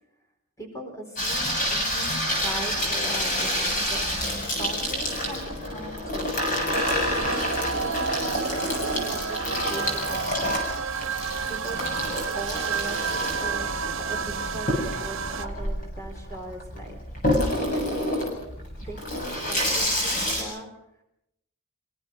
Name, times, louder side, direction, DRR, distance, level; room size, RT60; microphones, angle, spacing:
voice 1, 0.6-4.0 4.6-6.4 7.1-10.6 11.5-12.0 12.3-13.7 14.0-17.0 17.7-17.8 18.8-20.7, right 1 dB, 15° left, 3 dB, 4.3 m, -39 dB
Water tap faucet / Sink (filling or washing), 1.2-20.4, left 1 dB, 40° left, 7.7 m, -28 dB
sound 1, 6.7-15.5, right 5 dB, 80° right, 1.2 m, -30 dB
27.0 x 17.5 x 6.5 m, 0.79 s
head